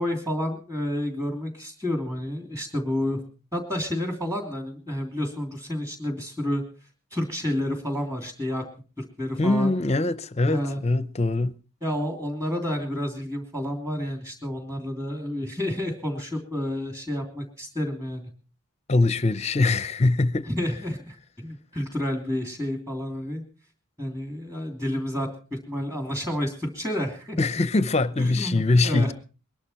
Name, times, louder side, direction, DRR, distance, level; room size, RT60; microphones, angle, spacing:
voice 1, 0.0-3.2 3.5-6.6 7.1-8.6 9.0-9.7 10.5-10.8 11.8-18.3 20.5-23.4 24.0-27.4 28.2-29.1, left 1 dB, 15° right, 2.9 m, -30 dB
voice 2, 9.4-11.5 18.9-20.5 27.4-29.1, left 2 dB, 30° left, 0.6 m, -22 dB
21.5 x 11.5 x 4.3 m
head